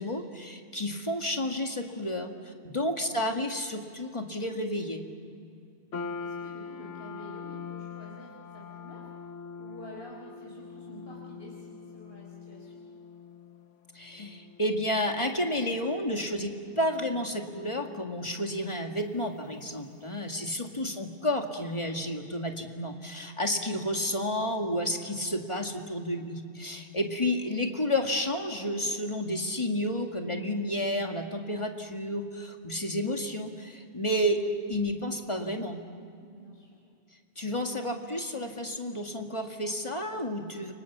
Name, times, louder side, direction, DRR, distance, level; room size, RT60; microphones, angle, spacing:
voice 1, 0.0-5.0 13.9-34.4 34.7-35.8 37.4-40.7, left 1 dB, 25° left, 3 dB, 2.0 m, -31 dB
voice 2, 2.9-3.4 6.2-9.1 9.5-12.9 20.8-21.2 27.5-27.6 36.2-36.8, equal, 55° left, -3 dB, 4.3 m, -49 dB
sound 1, 5.9-20.3, left 5 dB, 90° left, 1.3 m, -44 dB
30.0 x 25.5 x 7.2 m, 2.5 s
omnidirectional pair, 1.2 m